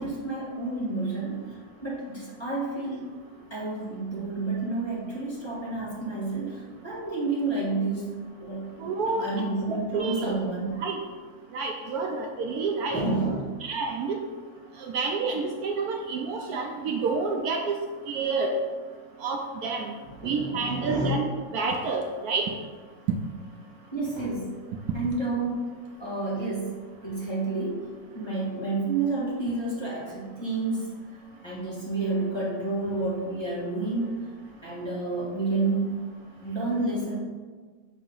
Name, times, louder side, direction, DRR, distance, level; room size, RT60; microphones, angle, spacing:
voice 1, 0.0-3.1 3.5-8.6 9.1-10.8 12.9-13.6 20.1-21.3 23.9-24.5 24.9-25.6 26.0-26.7 27.0-27.9 28.1-30.9 31.4-34.2 34.6-36.0 36.4-37.2, right 3 dB, 15° left, -8 dB, 1.4 m, -30 dB
voice 2, 8.8-9.3 9.7-10.3 10.8-11.0 11.5-13.0 13.6-14.2 14.8-17.7 18.1-18.6 19.2-19.9 20.2-21.3 21.5-22.4, right 4 dB, 70° right, 2 dB, 1.0 m, -29 dB
6.3 x 2.9 x 5.3 m, 1.5 s
omnidirectional pair, 1.8 m